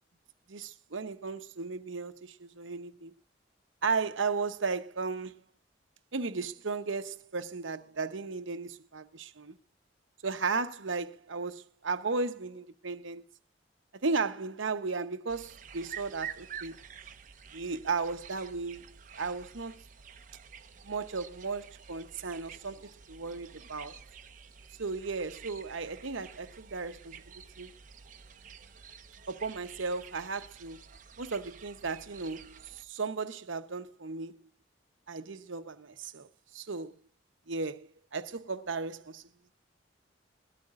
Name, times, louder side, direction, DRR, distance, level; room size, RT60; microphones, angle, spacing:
voice 1, 0.5-3.1 3.8-5.4 6.1-9.6 10.2-13.2 13.9-16.8 17.5-19.8 20.8-22.8 23.1-24.0 24.8-27.2 27.6-27.7 29.3-30.8 31.2-34.4 35.1-36.3 36.5-37.0 37.5-39.2, right 4 dB, 85° right, 1.0 m, -35 dB
sound 1, 15.3-32.8, right 7 dB, 40° right, 0.8 m, -49 dB
21.5 x 13.0 x 2.5 m
head